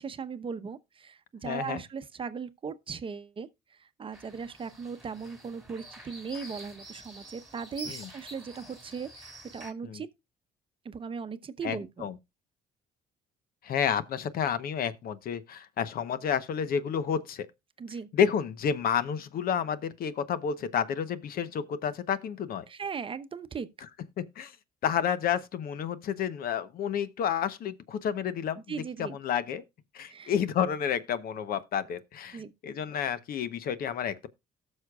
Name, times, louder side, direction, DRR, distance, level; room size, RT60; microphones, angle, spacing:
voice 1, 0.0-10.1 10.8-12.1 17.8-18.1 22.7-23.7 28.7-29.2 30.1-30.3 32.3-32.5, right 5 dB, 30° right, 0.8 m, -38 dB
voice 2, 1.4-1.8 7.9-8.1 9.8-10.0 11.6-12.1 13.6-17.5 18.1-22.6 24.4-24.5 24.8-28.6 29.0-29.6 29.9-34.3, left 8 dB, 60° left, 0.9 m, -30 dB
sound 1, 4.1-9.7, right 1 dB, ahead, 2.7 m, -47 dB
18.0 x 6.5 x 2.3 m
cardioid pair, 110°, 17 cm